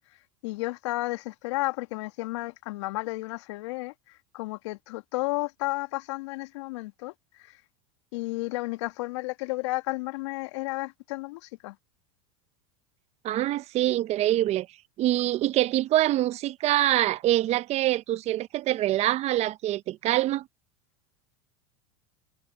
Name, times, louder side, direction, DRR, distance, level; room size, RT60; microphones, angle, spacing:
voice 1, 0.4-3.9 4.3-7.1 7.4-7.6 8.1-11.8, left 22 dB, 70° left, 2.1 m, -32 dB
voice 2, 13.2-14.7 15.0-20.4, right 14 dB, 45° right, 1.2 m, -25 dB
hypercardioid pair, 95°, 16 cm